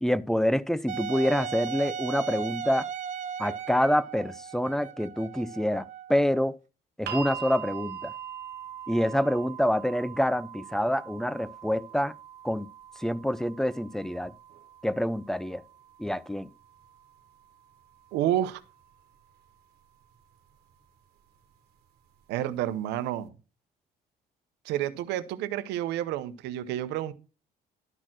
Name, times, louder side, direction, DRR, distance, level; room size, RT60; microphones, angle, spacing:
voice 1, 0.0-2.9 3.4-6.6 7.0-8.1 8.9-12.1 12.4-12.7 13.0-14.3 14.8-15.6 16.0-16.5, equal, 5° left, 0.4 m, -27 dB
Wind instrument woodwind instrument, 0.9-6.5, right 7 dB, 45° right, 0.6 m, -37 dB
sound 1, 7.1-19.1 20.2-20.3, right 9 dB, 70° right, 1.4 m, -43 dB
voice 2, 18.1-18.6 22.3-23.3 24.6-27.1, right 12 dB, 90° right, 0.8 m, -29 dB
12.0 x 4.3 x 6.1 m
cardioid pair, 110°, 17 cm